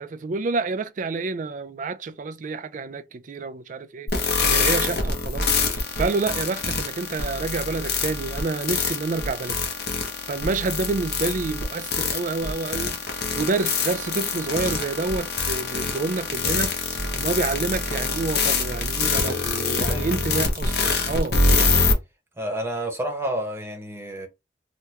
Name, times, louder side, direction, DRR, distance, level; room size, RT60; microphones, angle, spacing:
voice 1, 0.0-9.6 10.3-21.4, right 3 dB, 45° right, 0.4 m, -28 dB
sound 1, 4.1-21.9, left 4 dB, 60° left, 0.8 m, -25 dB
voice 2, 19.6-20.1 21.0-21.1 22.4-24.3, right 1 dB, 15° right, 0.8 m, -30 dB
3.4 x 2.2 x 2.9 m
head